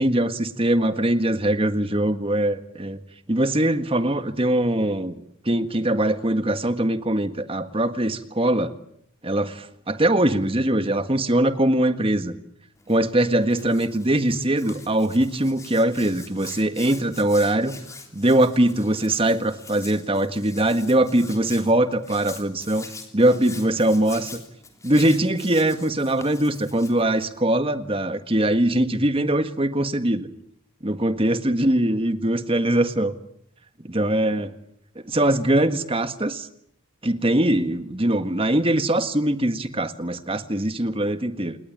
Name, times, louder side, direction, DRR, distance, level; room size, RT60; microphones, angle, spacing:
voice 1, 0.0-3.0 3.3-5.1 5.4-8.7 9.2-12.3 12.9-17.7 18.1-22.9 23.1-24.3 24.8-30.3 30.8-33.1 33.8-34.5 34.9-36.5 37.0-41.6, right 1 dB, 25° right, 10 dB, 1.7 m, -22 dB
Hands, 12.8-27.4, left 4 dB, 15° left, 3.3 m, -44 dB
28.5 x 20.5 x 8.9 m, 0.71 s
head